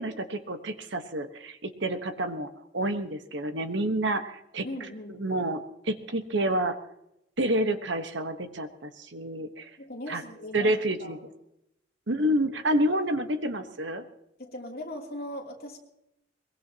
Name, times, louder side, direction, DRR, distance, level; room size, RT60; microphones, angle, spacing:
voice 1, 0.0-4.6 5.2-6.8 7.4-9.7 10.1-10.2 10.5-11.2 12.1-14.0, right 1 dB, 70° right, 8 dB, 1.3 m, -29 dB
voice 2, 4.6-5.2 9.8-10.7 11.0-11.1 12.2-12.3 14.4-15.8, left 1 dB, 50° left, -1 dB, 3.1 m, -39 dB
22.0 x 21.5 x 2.9 m, 0.83 s
head